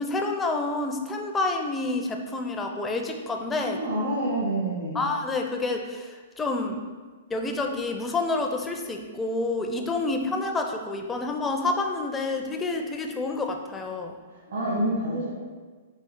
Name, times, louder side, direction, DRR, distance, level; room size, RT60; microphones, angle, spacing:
voice 1, 0.0-3.8 4.9-6.8 7.3-14.2, left 3 dB, 15° left, 3 dB, 0.4 m, -28 dB
voice 2, 3.6-5.0 14.3-15.3, right 1 dB, 75° right, -8 dB, 1.4 m, -28 dB
4.4 x 2.4 x 3.7 m, 1.4 s
hypercardioid pair, 130°, 0 cm